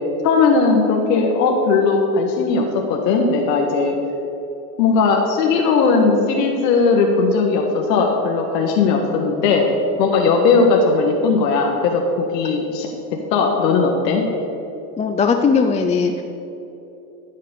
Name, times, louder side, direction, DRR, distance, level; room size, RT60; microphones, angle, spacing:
voice 1, 0.2-4.0 4.8-9.7 10.0-12.9 13.3-14.3, left 4 dB, 75° left, 1 dB, 1.7 m, -17 dB
voice 2, 15.0-16.2, left 5 dB, 15° left, 5 dB, 0.5 m, -18 dB
14.0 x 6.5 x 6.9 m, 2.9 s
supercardioid pair, 110°, 50 cm